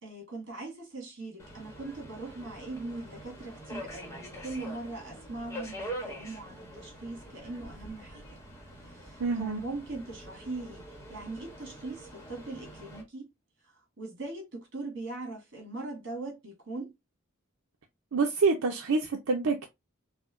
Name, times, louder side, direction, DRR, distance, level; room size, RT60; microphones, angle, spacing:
voice 1, 0.0-8.3 8.9-10.8 11.1-13.3 14.0-16.9, right 2 dB, 60° right, 2.2 m, -40 dB
Subway metro underground, 1.4-13.0, right 1 dB, 15° left, 1.0 m, -45 dB
voice 2, 9.2-9.6 18.1-19.7, right 4 dB, 85° right, 0.6 m, -27 dB
4.8 x 2.2 x 2.4 m
head